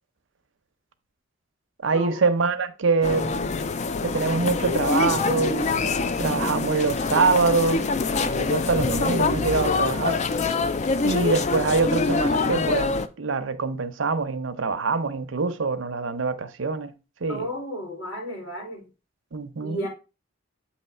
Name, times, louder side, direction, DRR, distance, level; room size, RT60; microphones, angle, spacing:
voice 1, 1.8-3.5 4.0-7.9 8.2-10.2 11.0-16.9 17.2-17.5 19.3-19.9, right 4 dB, 75° right, 0.7 m, -25 dB
sound 1, 3.0-13.1, left 4 dB, 35° left, 0.4 m, -25 dB
voice 2, 17.3-18.9 19.6-19.9, equal, 70° left, 3.7 m, -33 dB
7.9 x 3.0 x 4.3 m
head